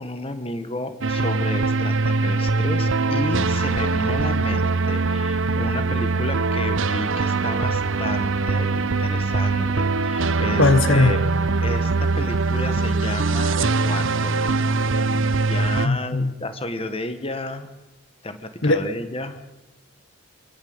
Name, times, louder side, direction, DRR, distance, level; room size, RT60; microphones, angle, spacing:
voice 1, 0.0-11.2 11.6-14.9 15.3-17.7 18.2-19.4, left 1 dB, 25° left, 9 dB, 1.7 m, -32 dB
sound 1, 1.0-15.9, right 3 dB, 65° right, 0.9 m, -22 dB
sound 2, 7.4-10.5, equal, 5° right, 4.5 m, -40 dB
voice 2, 10.6-11.1 15.8-16.3 18.6-18.9, left 2 dB, 60° left, 11 dB, 1.2 m, -18 dB
26.0 x 17.0 x 8.0 m, 1.1 s
head